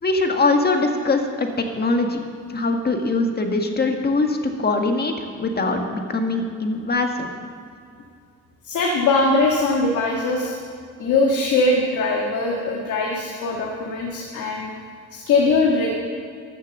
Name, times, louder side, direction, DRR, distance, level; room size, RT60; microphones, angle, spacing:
voice 1, 0.0-2.2 2.5-7.3, left 3 dB, 30° left, 4 dB, 1.6 m, -22 dB
voice 2, 8.6-10.5 11.0-14.7 15.1-15.9, left 3 dB, 75° left, -1 dB, 1.7 m, -21 dB
13.0 x 7.3 x 7.2 m, 2.3 s
cardioid pair, 90°, 30 cm